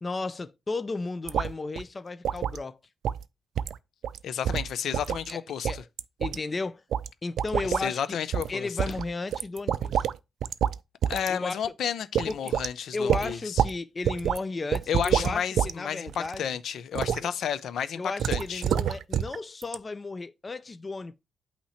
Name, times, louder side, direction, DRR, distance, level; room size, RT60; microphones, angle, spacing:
voice 1, 0.0-2.8 5.3-5.8 6.2-6.8 7.2-8.2 8.5-10.1 11.3-11.6 12.3-12.5 12.9-16.4 17.2-17.3 18.0-21.2, left 3 dB, 25° left, 0.3 m, -34 dB
sound 1, 1.3-1.5 1.8-1.9 2.2-2.6 3.0-3.2 3.6-3.8 4.0-4.2 4.4-5.3 5.6-6.4 6.9-7.1 7.4-7.8 8.3-8.5 8.8-10.2 10.4-10.8 11.0-11.3 11.6-11.7 12.1-12.7 13.1-13.7 14.0-14.4 14.7-15.7 16.1-16.4 16.9-17.2 18.2-19.4 19.6-19.7, right 9 dB, 85° right, 0.3 m, -27 dB
voice 2, 4.2-5.8 7.6-8.8 11.1-13.6 14.9-18.6, left 8 dB, 75° left, 0.5 m, -32 dB
8.5 x 2.9 x 4.3 m
wide cardioid pair, 140°, 0 cm